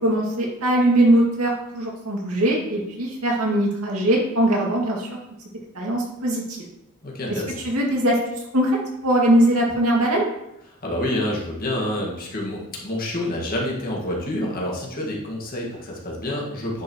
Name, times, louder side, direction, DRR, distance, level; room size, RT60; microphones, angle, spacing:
voice 1, 0.0-5.2 5.7-6.6 7.6-8.1 8.5-8.7 9.0-10.2, right 1 dB, 80° right, -2 dB, 2.2 m, -21 dB
voice 2, 7.0-7.5 10.8-16.8, left 1 dB, 40° left, -3 dB, 1.9 m, -28 dB
10.0 x 5.9 x 3.1 m, 0.84 s
head